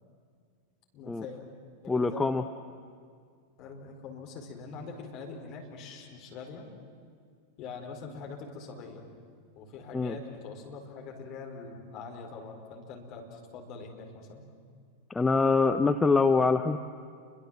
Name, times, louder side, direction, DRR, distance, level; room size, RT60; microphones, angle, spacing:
voice 1, 0.9-1.4 1.8-2.3 3.6-6.7 7.6-9.0 9.5-14.4, left 4 dB, 40° left, 2 dB, 4.7 m, -43 dB
voice 2, 1.9-2.4 9.9-10.2 15.1-16.8, left 4 dB, 10° left, 7 dB, 0.8 m, -24 dB
29.0 x 23.0 x 7.8 m, 2.1 s
figure-of-eight pair, 90°, 0 cm